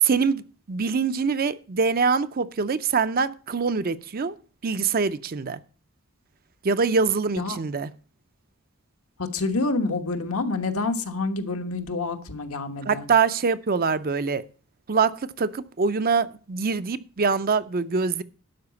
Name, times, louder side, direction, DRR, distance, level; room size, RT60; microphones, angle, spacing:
voice 1, 0.0-4.4 4.6-5.6 6.6-7.9 12.9-14.4 14.9-18.2, right 5 dB, 40° right, 0.5 m, -24 dB
voice 2, 9.3-13.1, left 3 dB, 80° left, 1.3 m, -27 dB
12.0 x 4.8 x 7.0 m
head